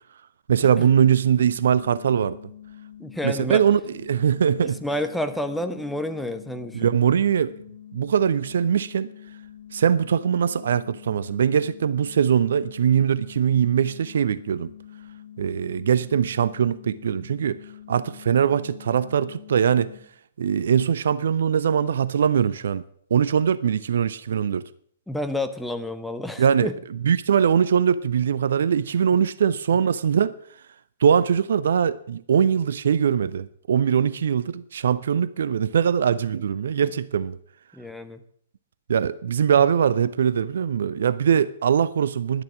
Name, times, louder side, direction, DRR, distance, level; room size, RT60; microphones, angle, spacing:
voice 1, 0.5-2.4 3.2-3.8 4.1-4.8 6.7-7.5 7.9-9.1 9.7-14.7 15.4-17.6 17.9-19.9 20.4-22.8 23.1-24.6 26.4-26.7 27.0-30.3 31.0-37.4 38.9-42.4, right 8 dB, 55° right, 0.5 m, -21 dB
sound 1, 1.3-20.0, left 10 dB, 65° left, 2.6 m, -45 dB
voice 2, 3.0-3.6 4.6-7.0 25.1-26.7 37.7-38.2, left 1 dB, ahead, 0.9 m, -30 dB
11.0 x 10.5 x 7.4 m
figure-of-eight pair, 115°, 0 cm